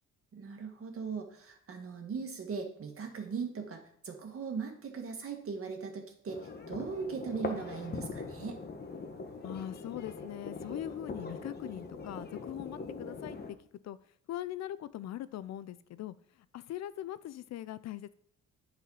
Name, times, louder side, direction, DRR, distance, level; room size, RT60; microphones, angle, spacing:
voice 1, 0.3-8.6, right 5 dB, 45° right, 3 dB, 1.8 m, -39 dB
sound 1, 6.3-13.5, left 3 dB, 35° left, 1.2 m, -42 dB
voice 2, 9.4-13.4 13.8-14.0 14.3-16.1 16.5-18.1, left 12 dB, 60° left, 16 dB, 0.4 m, -41 dB
8.1 x 4.1 x 5.6 m, 0.68 s
cardioid pair, 90°, 30 cm